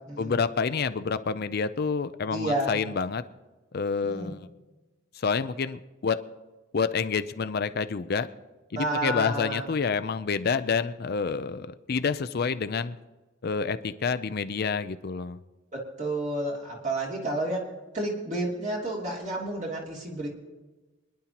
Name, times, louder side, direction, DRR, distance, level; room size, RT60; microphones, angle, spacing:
voice 1, 0.2-3.2 3.7-4.5 5.1-6.2 6.7-8.3 8.7-13.0 13.4-15.4, left 5 dB, 55° left, 11 dB, 0.5 m, -28 dB
voice 2, 2.3-2.8 4.0-4.3 8.7-9.7 15.7-17.6 17.9-20.3, right 1 dB, 40° right, -2 dB, 2.9 m, -30 dB
25.0 x 10.5 x 2.9 m, 1.2 s
head